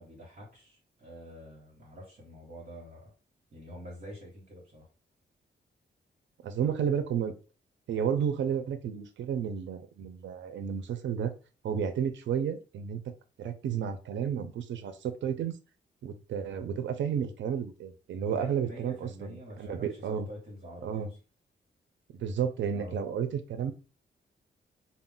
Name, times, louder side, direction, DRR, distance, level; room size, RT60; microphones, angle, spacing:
voice 1, 0.0-3.1 3.5-4.8 18.3-21.1 22.7-23.0, equal, 40° right, -5 dB, 1.1 m, -46 dB
voice 2, 6.4-7.3 7.9-11.3 11.6-13.0 13.4-15.6 16.0-20.3 20.8-21.1 22.1-23.7, right 8 dB, 85° right, 9 dB, 0.4 m, -32 dB
2.3 x 2.0 x 3.6 m, 0.34 s
wide cardioid pair, 150°, 19 cm